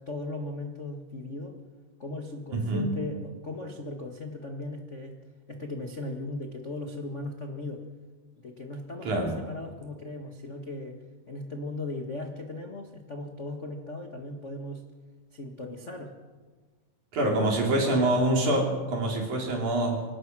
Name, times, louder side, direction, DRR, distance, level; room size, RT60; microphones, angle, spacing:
voice 1, 0.0-1.6 2.0-5.2 5.5-7.9 8.4-11.0 11.3-14.8 15.3-16.1 17.2-17.5 17.8-18.1, left 2 dB, 40° left, 3 dB, 1.0 m, -37 dB
voice 2, 2.5-2.9 9.0-9.3 17.1-20.0, right 1 dB, 60° right, 0 dB, 4.9 m, -25 dB
25.5 x 18.0 x 6.2 m, 1.4 s
omnidirectional pair, 3.9 m